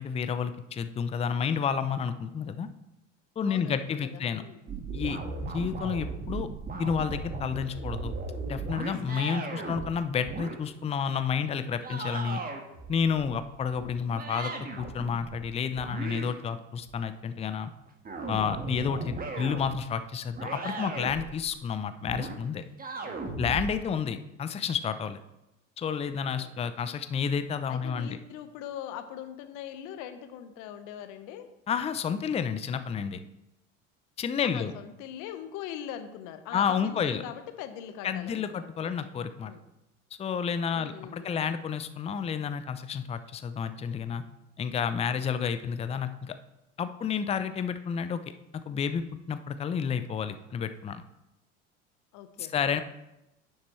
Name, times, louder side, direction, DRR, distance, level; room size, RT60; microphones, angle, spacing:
voice 1, 0.0-2.7 3.4-4.4 4.9-5.2 5.5-6.5 6.8-8.1 8.5-12.4 12.9-17.7 18.3-22.6 23.4-25.2 25.8-28.2 31.7-33.2 34.2-34.7 36.5-37.2 38.0-39.5 40.2-44.2 44.6-46.4 46.8-48.2 48.7-51.0 52.4-52.8, left 7 dB, 15° left, 11 dB, 0.5 m, -30 dB
voice 2, 3.4-4.6 9.5-9.7 23.0-23.4 23.7-24.0 26.3-26.6 27.7-31.5 34.4-39.1 39.4-39.6 40.7-41.5 52.1-52.8, left 10 dB, 55° left, 9 dB, 1.1 m, -42 dB
sound 1, 4.7-9.9 10.2-10.6 11.8-15.5 15.7-17.0 17.8-19.8 20.4-21.5 22.1-22.4 22.8-23.7, right 3 dB, 25° right, 1.5 m, -37 dB
10.0 x 7.3 x 3.2 m, 0.91 s
hypercardioid pair, 75°, 38 cm